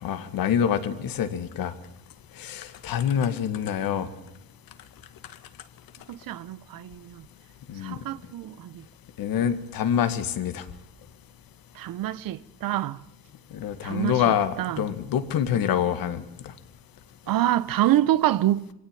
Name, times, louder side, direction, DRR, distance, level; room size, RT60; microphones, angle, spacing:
voice 1, 0.0-1.7 2.4-4.1 7.7-8.0 9.2-10.6 13.5-16.3, left 9 dB, 60° left, 2.2 m, -26 dB
voice 2, 6.1-7.2 7.8-8.8 11.8-13.0 13.8-14.9 17.3-18.7, right 13 dB, 60° right, 1.0 m, -26 dB
23.5 x 17.0 x 9.1 m
cardioid pair, 95°, 38 cm